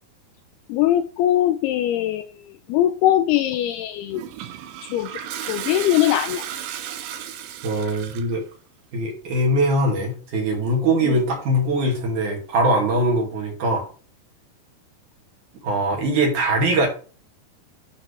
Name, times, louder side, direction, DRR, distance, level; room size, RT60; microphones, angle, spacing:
voice 1, 0.7-2.3 2.7-4.2 4.9-5.2 5.5-6.4 11.0-11.1, left 12 dB, 80° left, 2.3 m, -21 dB
Toilet flush, 4.1-8.4, right 10 dB, 85° right, 3.3 m, -34 dB
voice 2, 7.6-8.4 8.9-13.9 15.6-16.9, right 1 dB, 50° right, 3.5 m, -21 dB
11.5 x 6.3 x 3.4 m
omnidirectional pair, 4.9 m